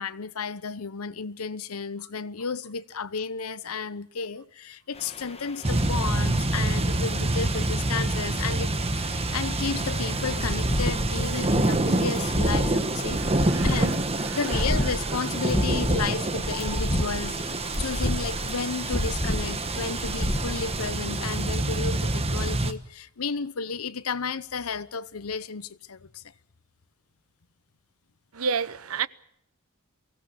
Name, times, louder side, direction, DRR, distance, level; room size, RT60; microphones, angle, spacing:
voice 1, 0.0-14.0 14.3-26.2, left 5 dB, 90° left, 0.9 m, -33 dB
sound 1, 5.0-20.9, left 1 dB, 30° left, 2.0 m, -32 dB
sound 2, 5.6-22.7, right 2 dB, 30° right, 1.2 m, -27 dB
voice 2, 13.2-14.6 28.3-29.1, right 6 dB, 80° right, 0.8 m, -32 dB
23.5 x 16.0 x 8.4 m
head